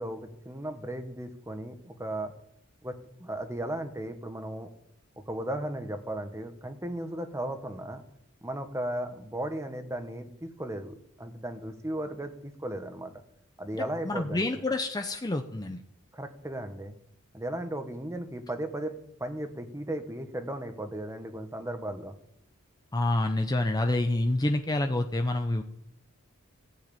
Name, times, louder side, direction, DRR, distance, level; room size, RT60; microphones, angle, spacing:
voice 1, 0.0-2.3 2.8-4.7 5.3-8.0 8.4-13.1 13.6-14.6 16.1-16.9 17.3-22.1, right 1 dB, 15° right, 7 dB, 1.5 m, -36 dB
voice 2, 13.7-15.8 22.9-25.6, left 2 dB, 20° left, 6 dB, 0.7 m, -28 dB
16.0 x 7.9 x 8.9 m, 0.74 s
head